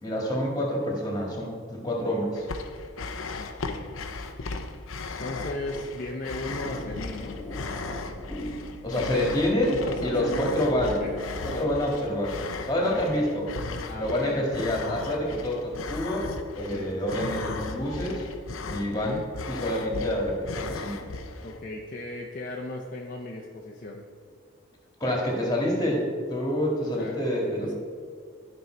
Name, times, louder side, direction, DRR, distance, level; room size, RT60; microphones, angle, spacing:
voice 1, 0.0-2.5 8.8-9.7 10.0-11.0 11.4-12.4 12.7-13.5 14.0-18.2 18.7-19.2 19.5-21.0 25.0-27.7, left 1 dB, 20° left, -1 dB, 1.8 m, -27 dB
sound 1, 2.3-21.6, left 3 dB, 85° left, 0.7 m, -37 dB
voice 2, 3.4-4.0 5.2-7.4 9.7-10.7 11.0-11.1 11.5-11.7 12.8-13.3 13.9-14.7 16.7-17.2 18.9-19.3 21.4-24.0 27.0-27.2 27.6-27.7, left 1 dB, 40° left, -1 dB, 0.7 m, -36 dB
sound 2, 6.6-11.7, left 1 dB, ahead, 1.5 m, -39 dB
12.5 x 5.4 x 4.5 m, 2.1 s
head